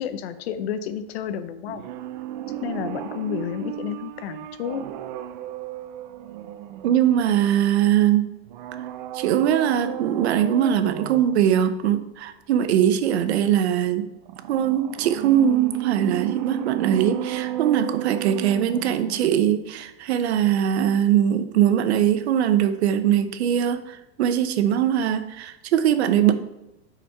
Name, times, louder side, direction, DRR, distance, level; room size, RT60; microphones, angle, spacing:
voice 1, 0.0-1.8 2.6-4.8, left 9 dB, 70° left, 11 dB, 0.8 m, -31 dB
sound 1, 1.7-7.4 8.5-11.5 14.3-19.5 19.7-19.8, right 12 dB, 50° right, 0.5 m, -33 dB
voice 2, 6.8-8.3 9.1-14.1 14.5-26.3, right 10 dB, 85° right, 10 dB, 0.9 m, -21 dB
8.5 x 5.0 x 4.4 m, 0.90 s
supercardioid pair, 160°, 32 cm